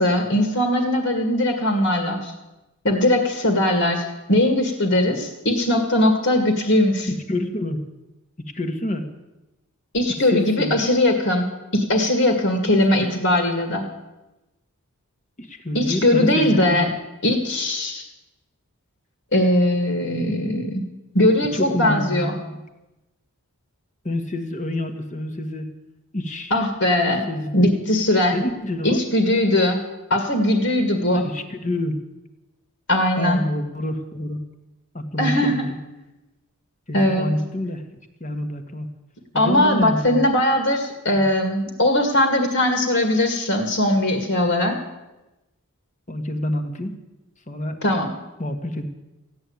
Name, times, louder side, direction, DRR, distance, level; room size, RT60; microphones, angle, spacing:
voice 1, 0.0-2.3 2.8-7.1 9.9-13.9 15.7-16.9 17.2-18.0 19.3-20.9 21.1-22.4 26.5-27.2 27.5-28.4 28.8-29.8 30.1-31.3 32.9-33.4 35.2-35.6 36.9-37.3 39.3-44.8 47.8-48.1, left 1 dB, 60° left, 4 dB, 2.1 m, -20 dB
voice 2, 7.1-7.8 8.4-9.1 10.3-10.8 15.4-16.9 21.4-22.5 24.0-25.7 26.1-26.6 27.3-27.7 28.3-29.0 31.1-32.0 33.2-34.4 34.9-35.7 36.9-37.8 38.2-38.9 39.3-40.2 41.2-41.3 46.1-47.0 47.5-47.8 48.4-48.9, left 1 dB, 35° left, 7 dB, 1.5 m, -27 dB
15.5 x 9.4 x 8.7 m, 1.0 s
head